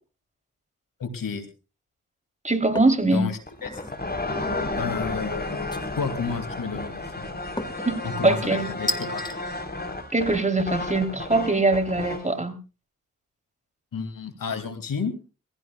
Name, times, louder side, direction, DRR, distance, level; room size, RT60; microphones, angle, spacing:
voice 1, 1.0-1.5 3.1-3.8 4.8-5.6 6.0-7.0 8.0-9.2 13.9-15.1, left 5 dB, 80° left, 9 dB, 2.5 m, -31 dB
voice 2, 2.4-3.2 7.8-7.9 8.2-8.7 10.1-12.5, right 2 dB, 20° right, 7 dB, 3.3 m, -22 dB
sound 1, 2.7-3.0 3.5-4.0 5.7-6.2 7.6-7.9 8.9-9.4, left 1 dB, 15° left, 2.0 m, -32 dB
sound 2, 3.5-12.3, left 2 dB, 30° left, 4.0 m, -32 dB
22.0 x 16.0 x 2.3 m, 0.33 s
cardioid pair, 45°, 33 cm